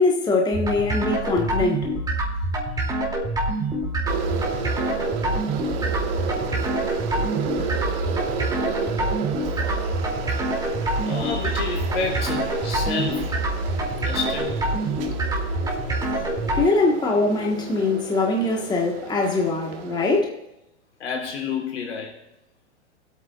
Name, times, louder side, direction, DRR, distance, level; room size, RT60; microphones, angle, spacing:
voice 1, 0.0-1.8 16.5-20.3, left 3 dB, 10° left, 1.5 m, -22 dB
sound 1, 0.5-16.6, right 1 dB, 10° right, 2.8 m, -26 dB
sound 2, 4.1-20.2, right 7 dB, 55° right, 1.6 m, -32 dB
voice 2, 11.0-13.3 14.0-14.6 21.0-22.1, left 5 dB, 75° left, 3.7 m, -29 dB
24.0 x 8.6 x 2.5 m
hypercardioid pair, 120°, 35 cm